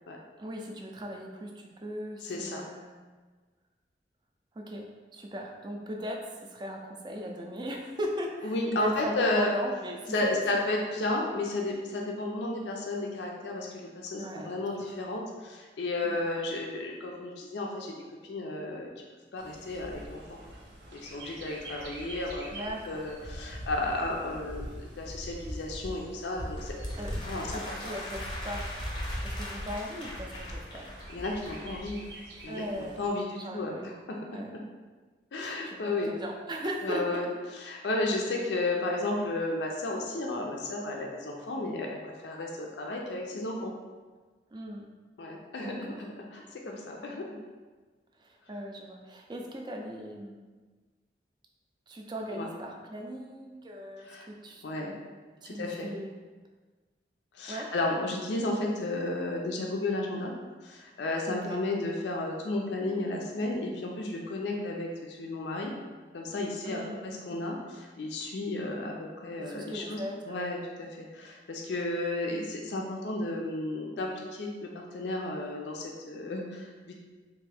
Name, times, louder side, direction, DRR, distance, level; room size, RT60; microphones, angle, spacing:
voice 1, 0.4-2.9 4.5-4.9 5.1-10.6 14.1-14.9 16.0-16.2 22.5-23.0 27.0-27.2 27.5-28.7 29.2-30.9 32.5-33.0 33.4-33.9 34.3-34.5 35.4-37.2 44.5-44.9 45.6-46.0 48.2-50.4 51.9-54.6 55.4-56.1 57.5-57.7 61.3-61.6 66.6-67.0 69.4-70.7, equal, 25° right, 1 dB, 0.4 m, -38 dB
voice 2, 2.2-2.6 8.4-9.5 10.1-17.9 18.2-18.9 19.3-20.4 20.9-22.5 22.9-26.7 27.2-27.5 27.8-27.9 31.1-32.0 32.4-34.2 35.3-36.1 36.8-37.3 37.6-43.7 45.2-47.3 52.3-52.5 54.1-54.3 54.6-54.9 55.4-55.9 57.3-60.3 60.6-65.7 66.1-68.9 69.2-70.0 70.3-76.9, left 2 dB, 85° left, 0 dB, 0.4 m, -33 dB
Bird, 19.4-33.1, equal, 85° right, 0.7 m, -41 dB
sound 1, 26.6-31.7, left 1 dB, 25° left, 0.6 m, -42 dB
3.6 x 2.5 x 3.3 m, 1.4 s
head